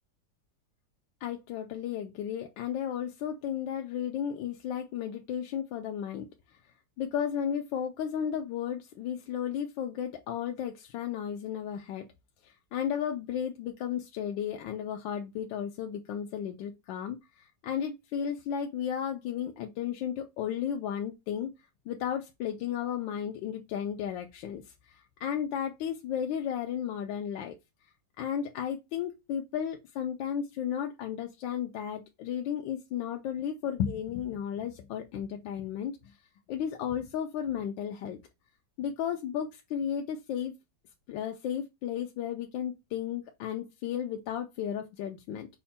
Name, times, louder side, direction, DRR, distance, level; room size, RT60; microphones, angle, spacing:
voice 1, 1.2-6.6 7.0-12.0 12.4-21.5 21.9-27.5 28.2-36.2 36.5-38.2 38.8-40.5 41.1-45.6, left 9 dB, 85° left, 1.3 m, -34 dB
5.5 x 2.1 x 4.2 m
omnidirectional pair, 2.0 m